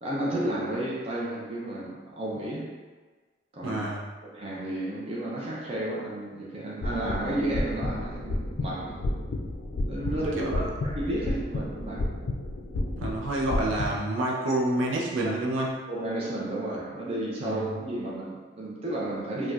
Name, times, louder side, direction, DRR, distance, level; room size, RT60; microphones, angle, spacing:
voice 1, 0.0-2.8 3.5-3.8 4.2-9.0 9.9-12.1 15.2-15.3 15.9-19.5, right 1 dB, 30° right, -5 dB, 0.5 m, -32 dB
voice 2, 3.6-4.0 10.1-10.7 13.0-15.7 17.4-17.7, right 1 dB, 90° right, -3 dB, 0.6 m, -28 dB
sound 1, 6.8-13.9, left 1 dB, 80° left, 0.4 m, -31 dB
4.2 x 2.3 x 2.4 m, 1.4 s
head